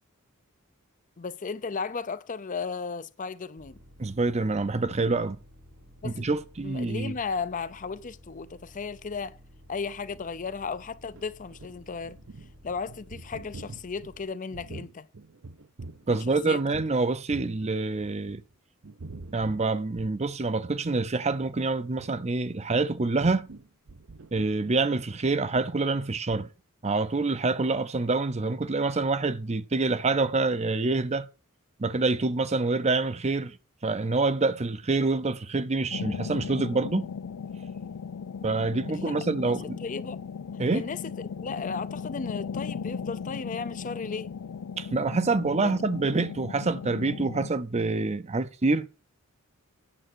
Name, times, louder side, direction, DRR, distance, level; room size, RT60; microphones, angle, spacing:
voice 1, 1.2-3.8 6.0-6.3 6.6-9.4 9.7-12.2 12.6-15.1 16.1-16.6 38.9-40.2 40.7-44.3 45.6-45.8, left 5 dB, 35° left, 0.5 m, -35 dB
sound 1, 3.6-14.2, equal, 85° right, 4.0 m, -53 dB
voice 2, 4.0-5.4 6.0-7.1 16.1-18.4 19.3-23.5 24.3-26.5 26.8-31.3 31.8-33.6 33.8-37.1 38.4-39.8 40.6-40.8 44.8-48.8, right 3 dB, 30° right, 0.6 m, -26 dB
sound 2, 11.1-17.0 17.3-18.5 18.8-20.4 20.7-20.8 21.1-21.4 21.9-22.2 22.7-26.0 26.3-26.5, right 3 dB, 60° right, 0.7 m, -45 dB
sound 3, 35.9-47.5, left 6 dB, 85° left, 0.4 m, -37 dB
8.9 x 7.6 x 6.3 m
head